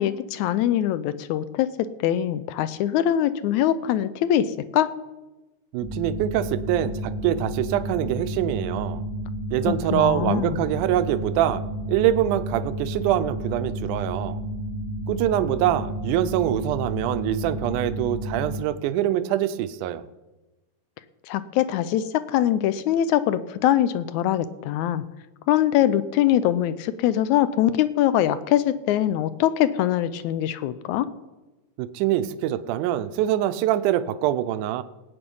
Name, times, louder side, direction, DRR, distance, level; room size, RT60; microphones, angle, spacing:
voice 1, 0.0-1.7 2.0-4.9 9.7-10.6 21.3-25.0 25.5-31.1, left 11 dB, 75° left, 14 dB, 1.9 m, -23 dB
voice 2, 5.7-9.0 9.5-11.6 11.9-14.4 15.1-20.0 31.8-34.8, right 12 dB, 80° right, 13 dB, 2.1 m, -24 dB
sound 1, 5.8-18.6, right 1 dB, 25° right, 0.4 m, -31 dB
17.5 x 9.0 x 5.4 m, 1.1 s
omnidirectional pair, 3.6 m